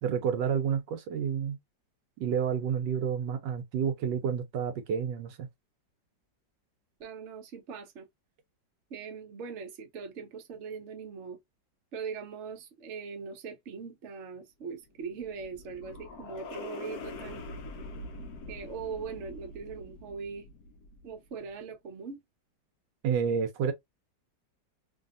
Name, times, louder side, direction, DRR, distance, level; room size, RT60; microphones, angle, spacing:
voice 1, 0.0-1.6 2.2-5.5 23.0-23.7, right 7 dB, 75° right, 1.2 m, -29 dB
voice 2, 7.0-8.1 8.9-11.4 11.9-17.5 18.5-20.5 21.0-22.2, right 5 dB, 55° right, 0.9 m, -41 dB
sound 1, 14.8-21.3, left 2 dB, 70° left, 0.9 m, -44 dB
2.8 x 2.7 x 2.4 m
omnidirectional pair, 2.0 m